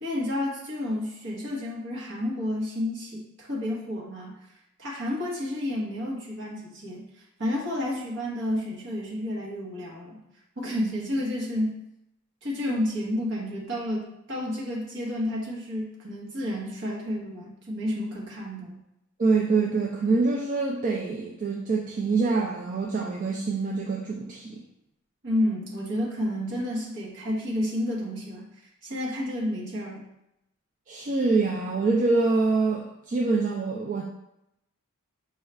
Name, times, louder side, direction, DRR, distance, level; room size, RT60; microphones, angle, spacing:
voice 1, 0.0-4.3 4.8-7.1 7.4-10.2 10.6-11.8 12.4-18.8 25.2-28.5 28.8-30.0, left 1 dB, 60° right, -3 dB, 1.1 m, -30 dB
voice 2, 19.2-24.6 30.9-34.0, right 3 dB, 40° right, -2 dB, 0.4 m, -25 dB
5.4 x 2.3 x 3.3 m, 0.85 s
head